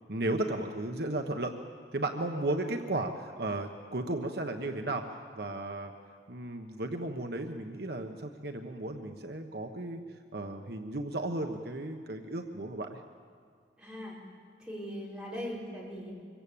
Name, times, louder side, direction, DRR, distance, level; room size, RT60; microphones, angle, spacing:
voice 1, 0.1-1.5 1.9-5.1 5.3-5.9 6.3-10.0 10.3-13.0, right 2 dB, 60° right, 4 dB, 1.3 m, -34 dB
voice 2, 13.8-14.2 14.6-16.1, equal, 5° right, -5 dB, 6.1 m, -40 dB
26.0 x 23.0 x 8.7 m, 2.1 s
head